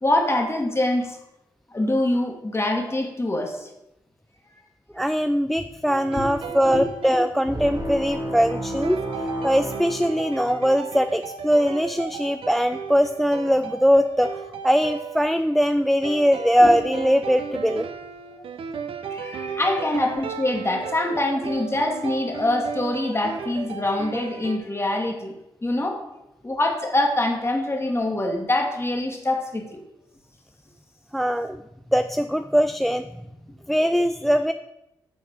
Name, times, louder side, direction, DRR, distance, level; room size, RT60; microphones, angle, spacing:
voice 1, 0.0-1.2 1.7-3.7 6.2-6.9 7.1-7.2 16.6-16.7 19.1-25.3 25.6-26.0 26.4-29.8, left 1 dB, 25° left, 2 dB, 1.5 m, -25 dB
voice 2, 4.9-9.0 9.4-17.9 31.1-31.6 31.9-33.1 33.7-34.5, equal, ahead, 10 dB, 0.3 m, -21 dB
sound 1, 5.9-8.1 8.8-24.6, right 6 dB, 65° right, 0.6 m, -35 dB
sound 2, 7.5-10.8, right 1 dB, 40° right, 2.1 m, -32 dB
6.5 x 4.2 x 5.0 m, 0.92 s
hypercardioid pair, 40°, 10 cm